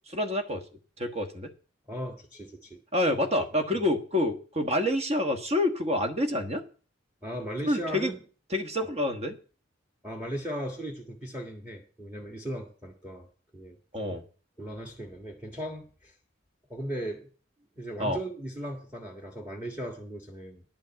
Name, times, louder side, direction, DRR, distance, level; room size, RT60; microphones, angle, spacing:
voice 1, 0.1-0.6 1.0-1.5 2.9-6.6 7.7-8.1 8.5-9.4 13.9-14.2 18.0-18.2, left 1 dB, 35° right, 6 dB, 1.4 m, -27 dB
voice 2, 1.9-2.8 3.1-3.2 7.2-8.2 8.8-8.9 10.0-13.3 13.5-13.8 14.1-14.2 14.6-16.1 16.7-17.3 17.8-20.6, right 1 dB, 10° right, 1 dB, 1.6 m, -37 dB
10.5 x 5.3 x 7.4 m, 0.39 s
head